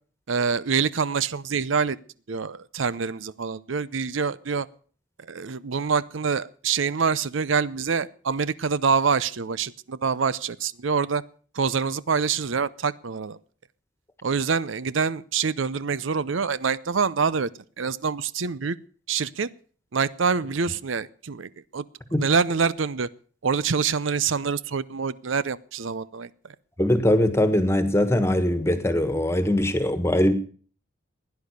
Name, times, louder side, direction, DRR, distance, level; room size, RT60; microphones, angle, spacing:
voice 1, 0.3-2.0 2.3-4.7 5.2-11.2 11.5-13.4 14.2-17.5 17.8-18.8 19.1-19.5 19.9-21.8 22.2-23.1 23.4-26.5, right 5 dB, 75° right, 0.6 m, -26 dB
voice 2, 26.8-30.3, left 1 dB, 15° left, 1.5 m, -21 dB
16.5 x 10.5 x 6.7 m
head